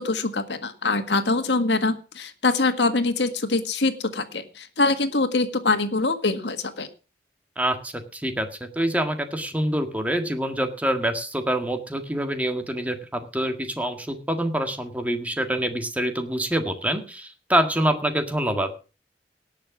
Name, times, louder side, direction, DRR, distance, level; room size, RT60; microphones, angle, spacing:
voice 1, 0.0-6.9, left 3 dB, 85° left, 9 dB, 1.7 m, -24 dB
voice 2, 7.6-18.7, right 1 dB, 10° right, 6 dB, 1.7 m, -26 dB
18.5 x 6.7 x 6.0 m, 0.34 s
head